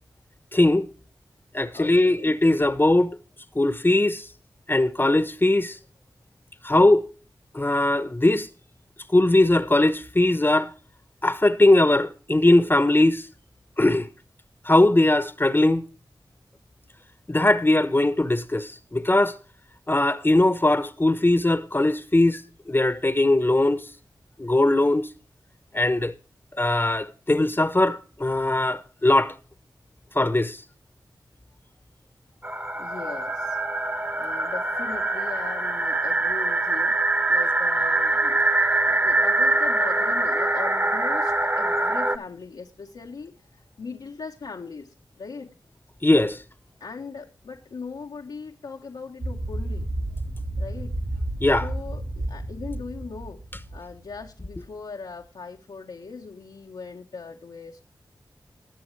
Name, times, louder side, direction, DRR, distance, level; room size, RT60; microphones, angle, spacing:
voice 1, 0.5-0.9 1.5-3.1 3.6-4.2 4.7-5.8 6.6-7.0 7.5-8.5 9.1-10.7 11.2-13.2 13.8-14.1 14.7-15.8 17.3-19.3 19.9-22.4 22.7-23.9 24.4-25.1 25.7-26.1 26.6-29.3 30.1-30.6 46.0-46.4 51.4-51.7, left 2 dB, 25° left, 1.0 m, -20 dB
voice 2, 1.7-2.4 32.8-33.6 34.2-36.9 37.3-38.4 38.8-45.5 46.8-50.1 50.6-50.9 51.6-53.4 53.7-57.8, left 4 dB, 80° left, 1.2 m, -39 dB
sound 1, 32.4-42.2, right 2 dB, 25° right, 1.2 m, -23 dB
sound 2, 49.2-54.3, right 1 dB, 80° right, 3.7 m, -31 dB
19.5 x 7.2 x 3.2 m
cardioid pair, 40°, 8 cm